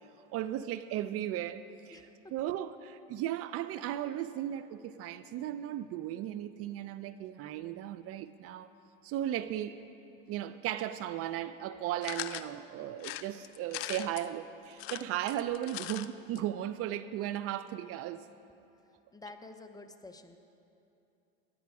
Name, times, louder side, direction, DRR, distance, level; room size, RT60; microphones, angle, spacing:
voice 1, 0.3-8.7 9.0-9.8 10.3-18.2, right 12 dB, 50° right, 13 dB, 0.5 m, -36 dB
voice 2, 1.9-2.3 19.1-20.4, left 2 dB, 10° left, 7 dB, 0.7 m, -49 dB
sound 1, 12.0-12.5 13.0-14.3 14.7-16.1 16.4-16.5 16.7-16.8, left 14 dB, 85° left, 0.5 m, -40 dB
15.0 x 11.0 x 4.8 m, 2.8 s
supercardioid pair, 100°, 30 cm